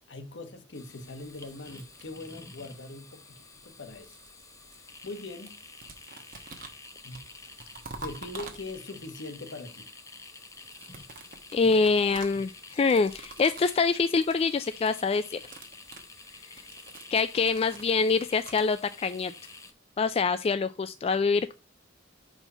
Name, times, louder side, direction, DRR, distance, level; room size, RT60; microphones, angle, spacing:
voice 1, 0.1-4.2 4.7-5.6 7.0-7.3 7.9-9.9, left 2 dB, 65° left, 1.1 m, -42 dB
sound 1, 0.7-19.7, left 3 dB, 15° left, 0.8 m, -49 dB
sound 2, 1.1-2.6 3.6-5.2 5.5-9.1 10.5-13.9 14.1-14.4 14.7-15.0 15.3-18.7, right 3 dB, 50° right, 1.2 m, -47 dB
voice 2, 11.5-15.4 16.5-16.6 17.1-19.3 20.0-21.5, left 4 dB, 30° left, 0.3 m, -25 dB
5.6 x 4.5 x 5.4 m
head